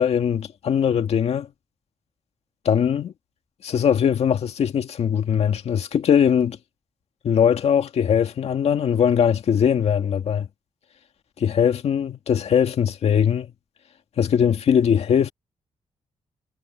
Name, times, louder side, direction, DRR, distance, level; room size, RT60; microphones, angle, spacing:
voice 1, 0.0-1.5 2.7-3.1 3.6-6.6 7.2-10.5 11.4-13.5 14.2-15.3, left 8 dB, 65° left, 2.0 m, -20 dB
cardioid pair, 110°, 11 cm